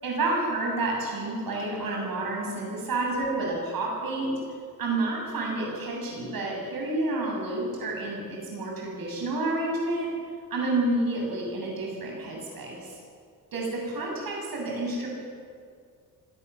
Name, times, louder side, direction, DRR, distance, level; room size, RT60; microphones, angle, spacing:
voice 1, 0.0-4.3 4.8-10.1 10.5-12.9 13.5-15.1, right 2 dB, 70° right, -1 dB, 7.6 m, -29 dB
25.0 x 18.0 x 7.1 m, 2.2 s
wide cardioid pair, 175°, 37 cm